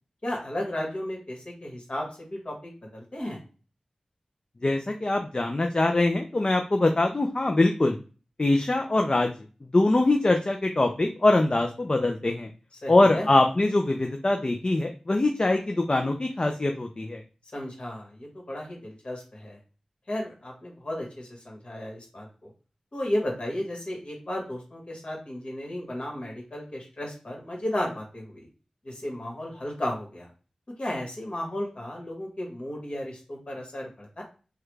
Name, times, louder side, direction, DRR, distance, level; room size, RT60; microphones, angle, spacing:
voice 1, 0.2-3.4 12.8-13.3 17.5-19.6 20.1-22.5 22.9-28.5 28.8-30.3 30.8-34.2, left 1 dB, 60° left, -1 dB, 1.7 m, -34 dB
voice 2, 4.6-8.0 8.4-9.3 9.7-12.5 12.9-17.2, left 2 dB, 45° left, 4 dB, 0.4 m, -23 dB
3.1 x 2.3 x 3.2 m, 0.35 s
cardioid pair, 45°, 2 cm